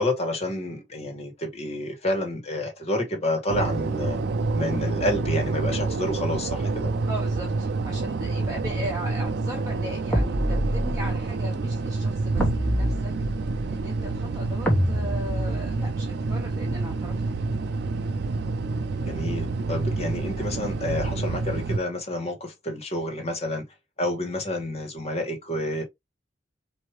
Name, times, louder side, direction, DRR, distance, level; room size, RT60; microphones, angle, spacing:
voice 1, 0.0-4.2 4.5-6.9 19.1-23.6 24.0-25.8, left 1 dB, 35° left, 1.7 m, -29 dB
sound 1, 3.5-21.8, right 3 dB, 65° right, 0.4 m, -28 dB
voice 2, 7.1-13.1 13.7-17.5, equal, 20° right, 1.1 m, -38 dB
sound 2, 10.1-11.2 12.4-13.7 14.7-15.9, equal, 10° left, 1.1 m, -26 dB
4.4 x 2.7 x 3.0 m
head